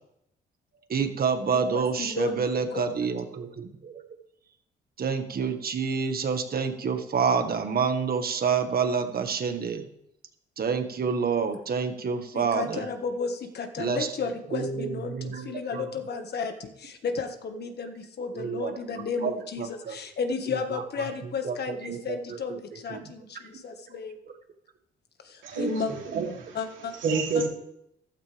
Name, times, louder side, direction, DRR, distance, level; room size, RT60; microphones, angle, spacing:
voice 1, 0.9-4.0 5.0-9.9 10.6-12.8 13.8-14.1 14.5-15.9 18.3-20.0 20.5-20.6 21.4-23.0, right 6 dB, 50° right, 6 dB, 1.7 m, -28 dB
voice 2, 1.7-2.4 2.7-3.0 12.3-24.2 25.2-25.9 26.5-26.9, left 5 dB, 55° left, 6 dB, 1.7 m, -33 dB
voice 3, 25.4-26.6 27.0-27.5, right 4 dB, 75° right, -1 dB, 3.3 m, -28 dB
14.5 x 13.0 x 3.5 m, 0.80 s
cardioid pair, 90°, 20 cm